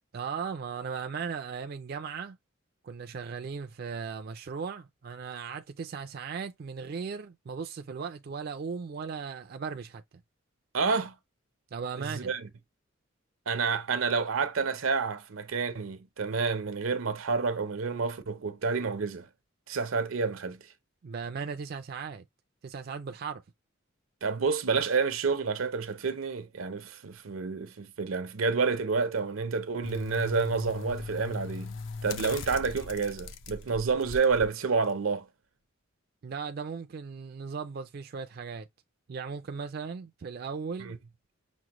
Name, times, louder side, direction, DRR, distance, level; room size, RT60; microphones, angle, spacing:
voice 1, 0.1-2.4 2.8-10.0 11.7-12.3 21.0-22.2 22.6-23.4 36.2-38.7 39.1-40.9, right 5 dB, 50° right, 0.3 m, -37 dB
voice 2, 10.7-11.1 12.0-12.5 13.5-19.3 19.7-20.6 24.2-31.7 32.0-35.3 40.8-41.0, right 4 dB, 85° right, 0.7 m, -29 dB
sound 1, 29.8-34.5 34.9-35.0, left 4 dB, 65° left, 0.5 m, -40 dB
6.1 x 2.1 x 2.9 m
head